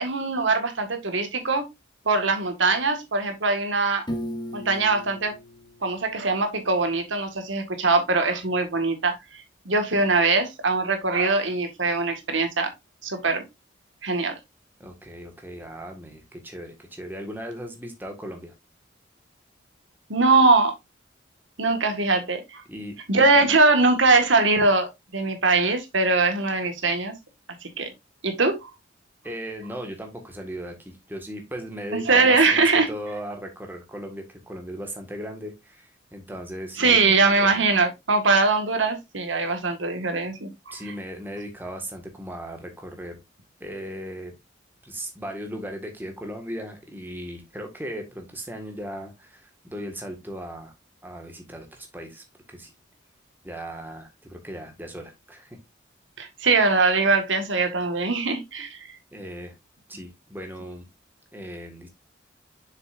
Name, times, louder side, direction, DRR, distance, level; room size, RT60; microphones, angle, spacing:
voice 1, 0.0-1.7 2.1-4.0 4.5-5.3 5.8-12.7 13.0-13.4 14.0-14.4 20.1-20.7 21.6-22.6 23.1-27.1 27.6-27.9 28.2-28.7 31.9-32.9 36.8-40.5 56.2-58.8, right 3 dB, 85° right, 1.7 m, -22 dB
Piano, 4.1-7.0, equal, 25° left, 2.0 m, -37 dB
voice 2, 14.8-18.5 22.7-23.3 29.2-37.5 40.7-43.2 43.6-44.3 44.8-50.7 51.0-52.7 53.4-55.6 59.1-59.5 59.9-60.9 61.3-61.9, equal, 10° right, 1.7 m, -37 dB
6.9 x 6.6 x 2.6 m
head